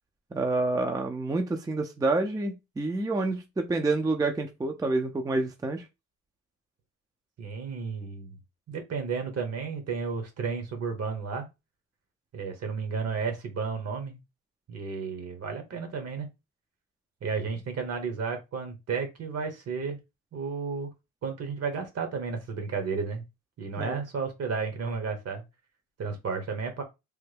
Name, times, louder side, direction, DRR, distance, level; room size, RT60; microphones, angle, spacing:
voice 1, 0.3-5.8 23.8-24.0, right 2 dB, 10° right, 0.4 m, -28 dB
voice 2, 7.4-8.4 8.7-11.5 12.3-14.2 14.7-16.3 17.2-20.0 20.3-20.9 21.2-23.2 23.6-25.4 26.0-26.8, right 5 dB, 55° right, 1.1 m, -32 dB
3.3 x 2.0 x 3.3 m
cardioid pair, 90°, 30 cm